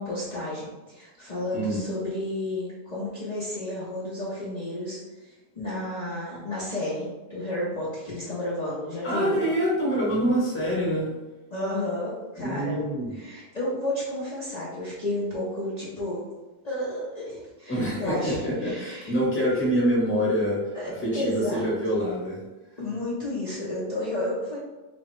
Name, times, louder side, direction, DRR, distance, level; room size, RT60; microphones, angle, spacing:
voice 1, 0.0-9.5 11.5-12.9 13.1-16.2 16.6-19.5 20.7-21.7 22.8-24.6, left 1 dB, 35° left, -7 dB, 0.7 m, -32 dB
voice 2, 9.0-11.2 12.4-13.2 17.7-22.4, equal, 10° left, -6 dB, 0.9 m, -26 dB
3.5 x 3.1 x 3.1 m, 1.1 s
omnidirectional pair, 1.6 m